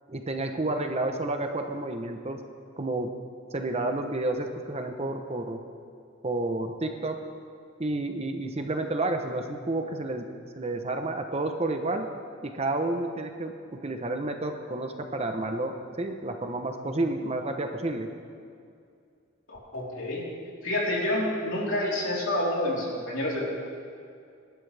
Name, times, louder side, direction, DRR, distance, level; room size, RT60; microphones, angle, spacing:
voice 1, 0.1-2.4 2.8-3.1 3.5-5.6 6.2-7.2 7.8-10.3 10.6-12.1 12.4-18.1, right 2 dB, 30° right, 5 dB, 1.0 m, -30 dB
voice 2, 19.5-20.2 20.6-23.5, left 1 dB, 70° left, -5 dB, 3.9 m, -28 dB
25.0 x 11.5 x 3.5 m, 2.4 s
head